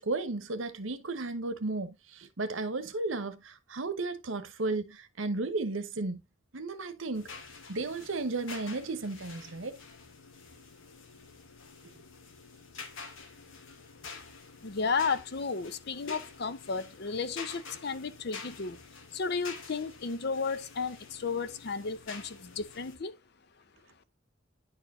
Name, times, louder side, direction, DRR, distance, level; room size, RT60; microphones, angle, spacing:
voice 1, 0.0-6.2 6.5-7.3 7.7-9.8, right 3 dB, 85° right, 1.0 m, -34 dB
sound 1, 7.1-23.0, left 5 dB, 85° left, 1.3 m, -48 dB
voice 2, 14.6-18.8 19.1-23.2, left 4 dB, 55° left, 0.7 m, -33 dB
10.0 x 4.4 x 2.7 m
head